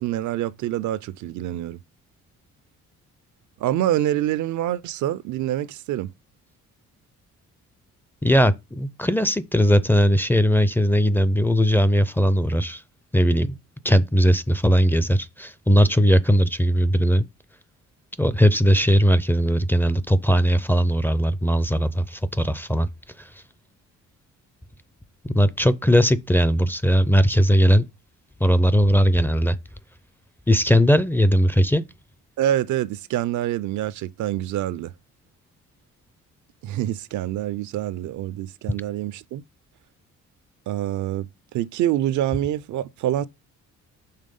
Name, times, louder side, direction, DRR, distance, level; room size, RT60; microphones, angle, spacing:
voice 1, 0.0-1.8 3.6-6.1 32.4-34.9 36.6-39.4 40.7-41.3 41.5-43.3, right 12 dB, 70° right, 0.5 m, -26 dB
voice 2, 8.2-12.8 13.1-13.6 13.8-17.2 18.2-22.9 25.3-27.8 28.4-29.6 30.5-31.8, equal, 5° left, 0.4 m, -19 dB
5.7 x 3.4 x 5.2 m
cardioid pair, 90°, 30 cm